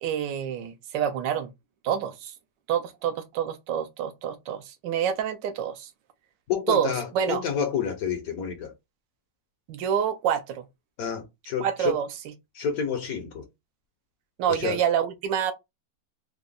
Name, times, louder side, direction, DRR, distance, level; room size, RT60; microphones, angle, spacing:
voice 1, 0.0-1.5 1.8-2.3 2.7-5.9 6.7-7.4 9.7-10.6 11.6-12.1 14.4-15.5, right 9 dB, 80° right, 1.3 m, -27 dB
voice 2, 6.5-8.7 11.0-12.0 12.5-13.4 14.5-14.8, left 7 dB, 65° left, 1.0 m, -29 dB
3.7 x 2.0 x 3.5 m
omnidirectional pair, 1.9 m